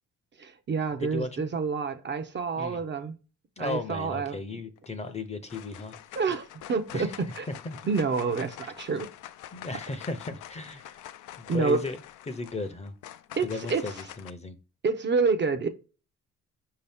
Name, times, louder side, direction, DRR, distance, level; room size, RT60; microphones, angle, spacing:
voice 1, 0.4-3.2 3.6-4.4 6.2-7.5 7.9-9.1 11.5-11.8 13.4-13.8 14.8-15.7, right 4 dB, 40° right, 0.6 m, -28 dB
voice 2, 1.0-1.5 2.6-2.8 3.6-5.9 6.9-7.2 7.6-7.8 9.5-11.0 11.4-12.0 12.3-12.9 13.4-14.6, left 3 dB, 20° left, 0.6 m, -35 dB
sound 1, 4.8-5.2 5.5-14.3, left 12 dB, 85° left, 0.5 m, -46 dB
5.1 x 2.8 x 3.4 m
cardioid pair, 90°, 30 cm